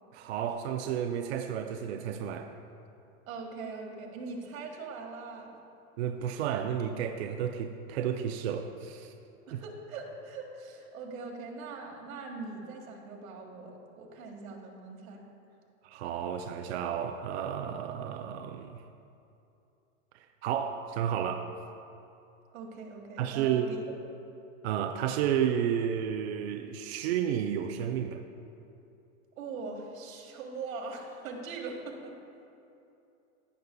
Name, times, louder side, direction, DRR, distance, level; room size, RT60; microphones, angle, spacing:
voice 1, 0.1-2.5 6.0-9.1 9.5-9.6 15.8-18.8 20.1-21.5 23.2-23.7 24.6-28.2, right 9 dB, 55° right, 5 dB, 0.5 m, -32 dB
voice 2, 3.3-5.5 9.5-15.2 22.5-23.8 29.4-32.1, right 4 dB, 85° right, 1 dB, 1.7 m, -41 dB
15.0 x 6.5 x 2.2 m, 2.7 s
supercardioid pair, 160°, 40 cm